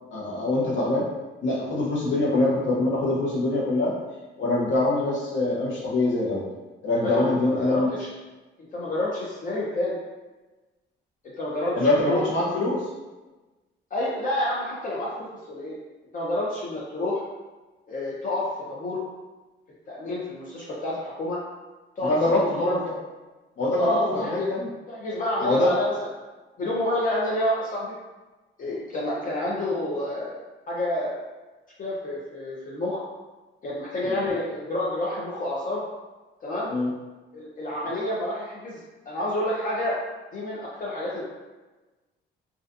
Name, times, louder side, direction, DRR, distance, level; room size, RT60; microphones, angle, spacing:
voice 1, 0.1-1.0 1.4-3.9 4.4-6.4 6.8-7.9 11.8-12.8 22.0-22.8 23.6-24.7 25.4-25.7 34.0-34.2 36.7-36.9, left 2 dB, 75° left, -4 dB, 0.8 m, -24 dB
voice 2, 6.9-8.1 8.7-10.0 11.2-12.3 13.9-15.8 16.1-17.2 17.9-19.0 19.9-21.4 22.0-22.7 23.8-24.5 24.9-25.9 26.6-27.9 28.6-30.4 30.7-31.2 31.8-33.0 33.6-35.8 36.4-36.7 37.3-38.8 39.1-40.0 40.3-41.3, left 1 dB, 45° left, -6 dB, 0.5 m, -29 dB
2.4 x 2.2 x 2.5 m, 1.2 s
cardioid pair, 90°, 20 cm